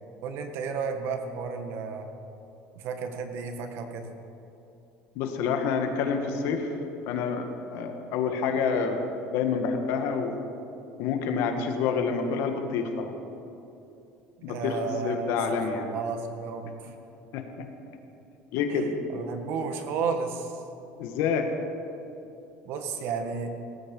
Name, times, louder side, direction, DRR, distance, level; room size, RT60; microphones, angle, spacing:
voice 1, 0.2-2.1 2.8-4.1 14.4-16.9 18.7-20.6 22.7-23.5, right 5 dB, 55° right, 6 dB, 1.8 m, -33 dB
voice 2, 5.1-6.7 7.1-9.0 9.3-10.4 11.0-13.1 14.4-15.9 17.3-17.7 18.5-18.9 21.0-21.5, left 6 dB, 60° left, 5 dB, 1.7 m, -28 dB
18.5 x 14.0 x 5.5 m, 2.8 s
cardioid pair, 155°, 5 cm